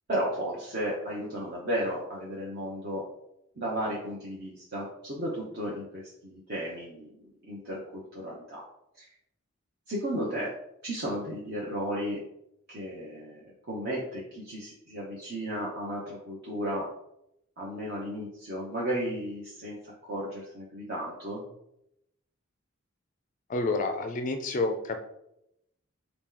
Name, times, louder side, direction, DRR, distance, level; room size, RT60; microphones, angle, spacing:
voice 1, 0.1-3.1 3.6-8.6 9.0-9.1 9.9-10.5 10.8-12.2 12.7-16.9 17.6-21.4, equal, 50° right, -6 dB, 0.8 m, -34 dB
voice 2, 23.5-25.0, left 3 dB, 40° left, 6 dB, 0.3 m, -29 dB
4.0 x 2.9 x 3.8 m, 0.81 s
head